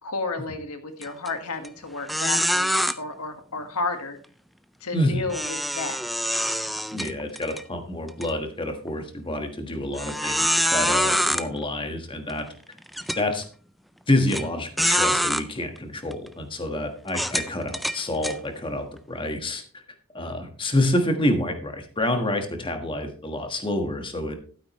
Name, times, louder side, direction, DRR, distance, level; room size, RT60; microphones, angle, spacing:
voice 1, 0.0-2.7 3.0-4.2 4.8-6.0 6.3-6.4, left 3 dB, 90° left, 7 dB, 1.6 m, -32 dB
sound 1, 1.0-1.3 1.6-1.7 2.1-2.9 5.3-7.6 8.1-8.3 8.9-9.0 10.0-11.4 12.3-12.4 12.9-13.2 14.3-14.4 14.8-15.4 16.1-16.3 17.1-18.4, equal, ahead, 0.3 m, -25 dB
voice 2, 4.9-5.3 6.9-12.5 13.2-13.4 14.1-19.6 20.1-24.4, left 1 dB, 25° left, 6 dB, 1.4 m, -27 dB
12.0 x 9.1 x 3.1 m, 0.41 s
head